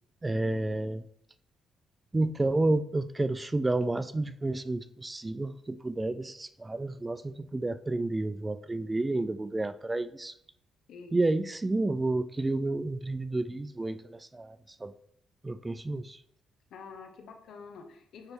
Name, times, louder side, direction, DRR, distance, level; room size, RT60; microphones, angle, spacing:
voice 1, 0.2-1.0 2.1-10.3 11.1-14.9 15.4-16.2, right 2 dB, 20° right, 0.4 m, -30 dB
voice 2, 10.9-11.2 16.7-18.3, left 5 dB, 75° left, 1.2 m, -47 dB
9.6 x 3.2 x 4.5 m
cardioid pair, 90°, 0 cm